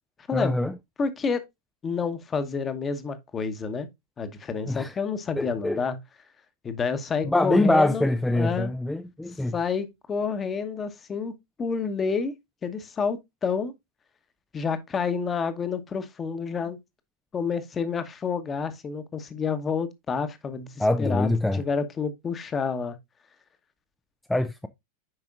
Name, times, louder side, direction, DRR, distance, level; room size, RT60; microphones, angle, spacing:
voice 1, 0.3-0.7 4.7-4.9 5.4-5.8 7.2-9.5 20.8-21.6 24.3-24.7, left 1 dB, 5° left, 0.5 m, -24 dB
voice 2, 1.0-1.4 1.8-3.9 4.2-6.0 6.6-8.1 8.3-8.7 9.5-12.3 12.6-13.7 14.5-16.8 17.3-23.0, left 5 dB, 20° left, 1.1 m, -29 dB
8.9 x 5.5 x 2.5 m
figure-of-eight pair, 90°, 0 cm